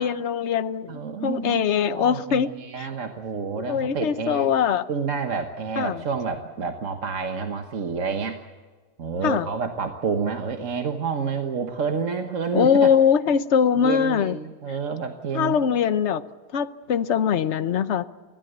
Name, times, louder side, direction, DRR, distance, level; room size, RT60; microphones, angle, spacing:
voice 1, 0.0-2.5 2.8-2.9 3.6-4.8 5.8-6.0 9.2-9.5 12.5-14.4 15.3-16.2 16.5-18.1, left 7 dB, 50° left, 12 dB, 1.0 m, -22 dB
voice 2, 0.9-1.6 1.9-4.5 4.9-8.4 9.0-12.9 13.8-15.6, right 5 dB, 50° right, 5 dB, 1.5 m, -29 dB
25.0 x 16.5 x 8.1 m, 1.4 s
omnidirectional pair, 1.7 m